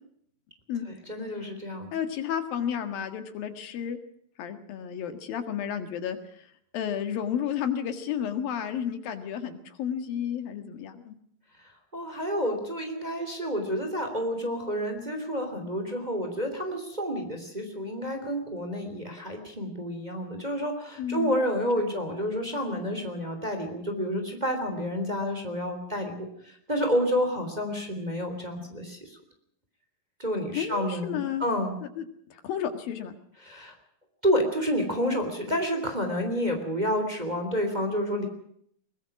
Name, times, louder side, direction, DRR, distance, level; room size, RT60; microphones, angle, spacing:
voice 1, 1.1-1.9 11.9-29.2 30.2-31.8 33.4-33.7 34.2-38.3, equal, 10° right, 5 dB, 3.1 m, -29 dB
voice 2, 1.9-4.0 4.4-6.5 6.7-11.2 21.0-21.4 30.6-31.5 32.0-32.1 32.3-33.1, left 9 dB, 85° left, 9 dB, 3.7 m, -32 dB
22.0 x 20.5 x 6.0 m, 0.68 s
omnidirectional pair, 4.0 m